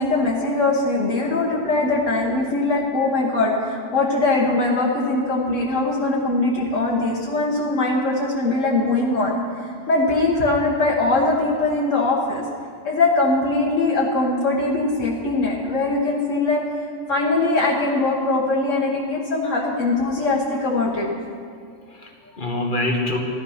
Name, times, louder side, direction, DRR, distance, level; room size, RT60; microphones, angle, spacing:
voice 1, 0.0-9.3 9.9-12.4 12.8-16.6 17.1-21.1, left 2 dB, 80° left, -3 dB, 1.7 m, -21 dB
voice 2, 12.7-13.0 21.1-21.2 21.7-23.2, left 1 dB, 40° left, 2 dB, 1.6 m, -27 dB
14.5 x 12.0 x 5.7 m, 2.2 s
omnidirectional pair, 1.3 m